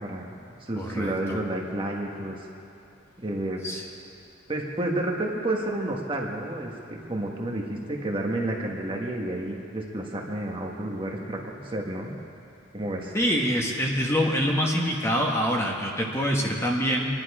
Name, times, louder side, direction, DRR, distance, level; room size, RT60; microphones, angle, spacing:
voice 1, 0.0-2.4 3.2-3.7 4.5-12.1 12.7-13.1, right 1 dB, 25° right, -1 dB, 1.5 m, -30 dB
voice 2, 0.7-1.4 3.6-3.8 13.1-17.1, equal, 15° left, -1 dB, 1.5 m, -25 dB
25.0 x 11.0 x 4.9 m, 2.8 s
head